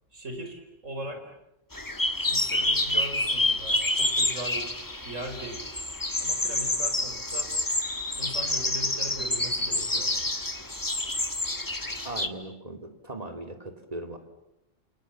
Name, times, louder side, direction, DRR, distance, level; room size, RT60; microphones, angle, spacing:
voice 1, 0.1-1.3 2.3-4.7 5.0-5.7 6.2-7.5 8.2-10.3, right 1 dB, 85° right, 5 dB, 5.4 m, -39 dB
sound 1, 1.7-12.3, left 1 dB, 15° left, 1.5 m, -28 dB
voice 2, 12.0-14.2, right 2 dB, 30° right, 5 dB, 3.0 m, -38 dB
28.5 x 28.0 x 7.5 m, 0.89 s
omnidirectional pair, 1.3 m